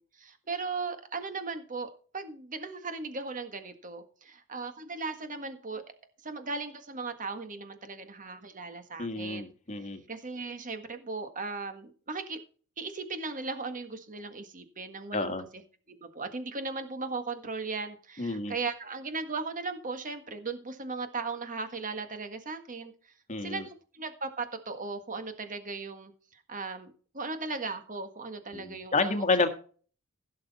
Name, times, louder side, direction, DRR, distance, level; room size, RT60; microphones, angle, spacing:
voice 1, 0.0-5.8 6.2-9.5 10.1-12.4 12.8-15.3 15.9-22.9 23.4-26.1 26.5-29.1, right 4 dB, 35° right, 8 dB, 1.6 m, -37 dB
voice 2, 9.0-10.0 15.1-15.4 18.2-18.5 23.3-23.7 28.5-29.5, left 3 dB, 35° left, 8 dB, 1.5 m, -29 dB
16.0 x 6.8 x 4.1 m, 0.41 s
head